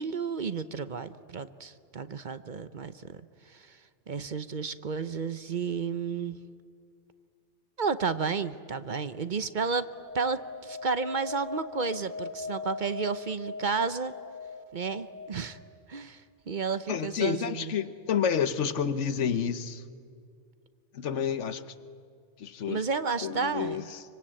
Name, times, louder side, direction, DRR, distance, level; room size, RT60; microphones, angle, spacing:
voice 1, 0.0-3.2 3.4-3.8 4.1-6.4 7.8-9.9 10.1-14.1 14.7-15.6 15.9-17.7 22.7-23.8, right 5 dB, 45° right, 13 dB, 0.9 m, -32 dB
sound 1, 9.9-15.3, left 4 dB, 20° right, 5.2 m, -40 dB
voice 2, 16.9-19.8 20.9-21.6 22.4-22.8 23.2-24.0, left 7 dB, 85° left, 13 dB, 1.3 m, -29 dB
25.0 x 24.5 x 8.8 m, 2.3 s
omnidirectional pair, 1.2 m